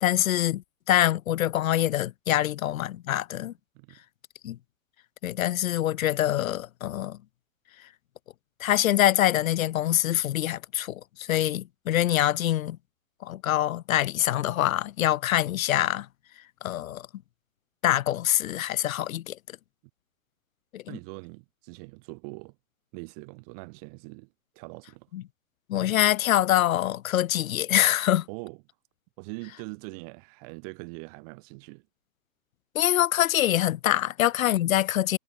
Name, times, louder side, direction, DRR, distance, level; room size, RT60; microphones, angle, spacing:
voice 1, 0.0-3.5 4.4-4.6 5.2-7.2 8.6-12.8 13.2-16.1 16.6-17.1 17.8-19.4 20.7-21.0 25.1-25.2 25.7-28.3 32.7-35.2, left 13 dB, 80° left, 0.7 m, -25 dB
voice 2, 20.9-22.5 22.9-24.3 24.5-25.1 28.3-28.6 29.2-31.9, right 35 dB, 25° right, 1.3 m, -42 dB
hypercardioid pair, 155°, 41 cm